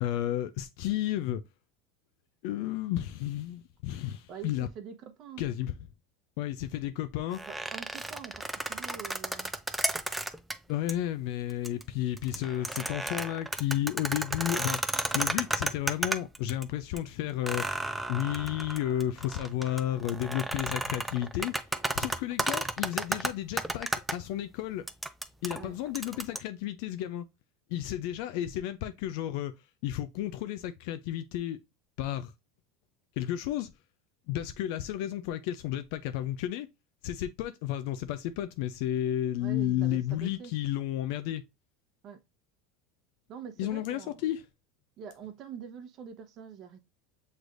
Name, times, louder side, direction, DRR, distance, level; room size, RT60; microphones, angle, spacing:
voice 1, 0.0-1.4 2.4-4.7 5.4-5.7 6.4-7.4 10.7-14.8 15.1-17.7 18.1-21.5 22.0-24.9 25.4-27.3 27.7-29.6 29.8-31.6 32.0-32.3 33.2-33.7 34.3-36.7 37.0-41.4 43.6-44.4, left 12 dB, 65° left, 0.4 m, -32 dB
voice 2, 4.3-5.4 7.5-9.5 15.1-15.7 25.6-25.8 39.4-40.5 42.0-42.2 43.3-44.2 45.0-46.8, right 8 dB, 45° right, 0.9 m, -45 dB
sound 1, 7.3-10.5 10.9-11.0 11.5-11.8 12.2-16.6 17.0-17.1 17.4-24.1 24.9-26.4, right 2 dB, 5° right, 0.4 m, -33 dB
6.2 x 3.3 x 2.5 m
supercardioid pair, 115°, 0 cm